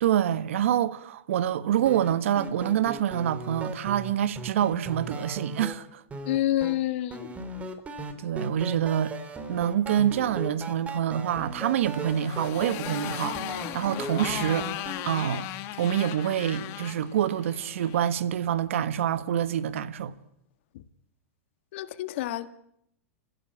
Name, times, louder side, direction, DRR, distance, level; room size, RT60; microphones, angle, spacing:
voice 1, 0.0-6.0 8.2-9.1 9.5-14.7 15.0-15.5 15.8-20.1, right 10 dB, 70° right, 1.5 m, -26 dB
sound 1, 1.8-5.7 6.1-6.7 7.1-15.0, right 2 dB, 20° right, 3.2 m, -38 dB
voice 2, 6.3-7.3 20.7-20.8 21.7-22.5, left 14 dB, 60° left, 1.7 m, -28 dB
Motorcycle, 11.6-18.1, left 14 dB, 45° left, 1.9 m, -37 dB
28.5 x 16.0 x 8.5 m
hypercardioid pair, 115°, 7 cm